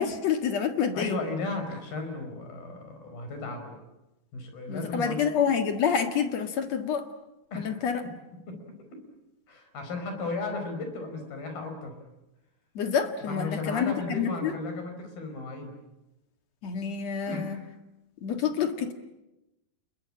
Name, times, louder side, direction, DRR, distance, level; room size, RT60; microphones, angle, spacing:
voice 1, 0.0-1.2 4.7-7.1 7.5-8.1 12.7-14.6 16.6-17.6 18.2-18.9, left 7 dB, 55° left, 7 dB, 2.5 m, -28 dB
voice 2, 0.9-3.8 4.3-5.2 7.5-7.8 8.5-8.6 9.5-12.0 13.2-15.7 17.3-17.6, left 3 dB, 70° left, 6 dB, 6.6 m, -35 dB
30.0 x 21.0 x 8.8 m, 0.96 s
omnidirectional pair, 4.4 m